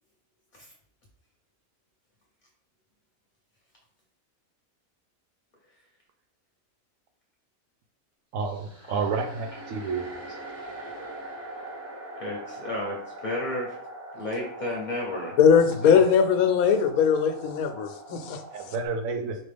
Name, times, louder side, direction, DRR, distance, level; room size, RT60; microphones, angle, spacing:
voice 1, 8.3-10.1 18.5-19.4, right 4 dB, 70° right, 5 dB, 1.0 m, -30 dB
sound 1, 8.4-18.9, right 2 dB, 15° right, 0.6 m, -42 dB
voice 2, 12.2-13.8 14.1-16.0, left 1 dB, 45° left, -1 dB, 0.7 m, -33 dB
voice 3, 15.4-18.4, left 7 dB, 90° left, 7 dB, 1.0 m, -20 dB
4.4 x 3.0 x 3.3 m, 0.66 s
omnidirectional pair, 1.5 m